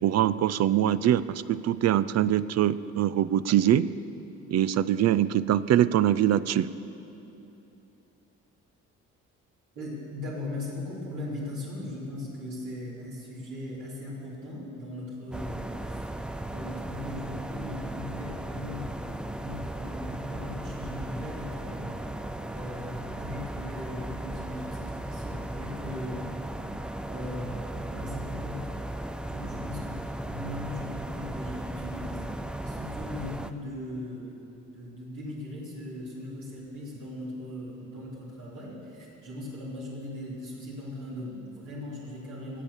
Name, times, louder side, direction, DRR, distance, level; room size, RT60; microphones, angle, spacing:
voice 1, 0.0-3.9 4.5-6.7, right 11 dB, 60° right, 16 dB, 0.5 m, -23 dB
voice 2, 9.7-22.0 22.4-26.3 26.6-26.7 27.1-28.7 29.1-30.0 30.2-32.3 32.6-34.4 34.7-42.6, left 1 dB, 75° right, -6 dB, 3.3 m, -39 dB
sound 1, 15.3-33.5, right 1 dB, 5° right, 0.5 m, -36 dB
18.5 x 7.4 x 7.0 m, 2.9 s
cardioid pair, 90°, 30 cm